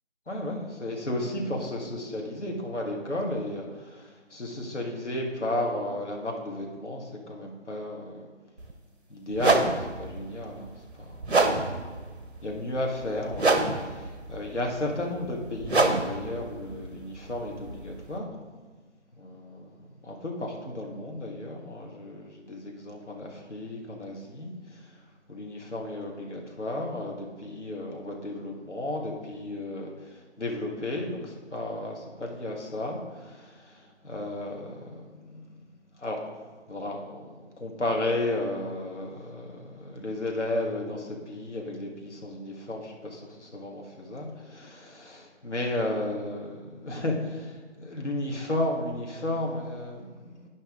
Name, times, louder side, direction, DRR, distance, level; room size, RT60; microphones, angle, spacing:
voice 1, 0.3-8.3 9.1-11.8 12.4-18.4 19.2-19.7 20.0-25.0 25.3-35.6 36.0-36.2 36.7-50.5, left 1 dB, 70° left, 0 dB, 1.8 m, -34 dB
sound 1, 8.6-8.7 9.3-18.2, right 3 dB, 60° right, 0.9 m, -28 dB
10.5 x 5.3 x 3.7 m, 1.4 s
figure-of-eight pair, 170°, 37 cm